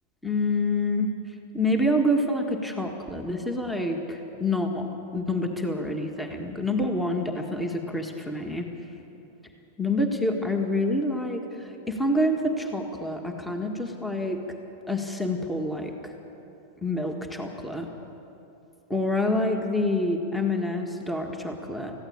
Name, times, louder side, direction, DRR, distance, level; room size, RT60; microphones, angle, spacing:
voice 1, 0.2-1.1 1.5-4.9 5.1-8.6 9.8-11.4 11.9-14.4 14.9-15.9 16.8-17.9 18.9-21.9, left 1 dB, 5° left, 3 dB, 1.7 m, -27 dB
20.0 x 15.0 x 8.7 m, 2.9 s
supercardioid pair, 135°, 0 cm